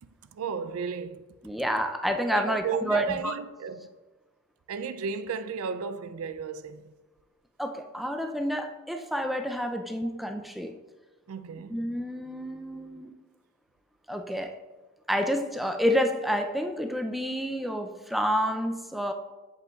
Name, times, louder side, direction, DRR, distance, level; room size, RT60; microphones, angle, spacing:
voice 1, 0.0-1.3 2.3-3.9 4.7-6.9 11.3-11.9 14.5-14.6, right 5 dB, 75° right, 0.4 m, -34 dB
voice 2, 1.4-3.3 7.6-10.7 11.7-13.2 14.1-14.6 15.1-19.1, equal, ahead, 0.4 m, -29 dB
7.8 x 7.4 x 2.3 m
head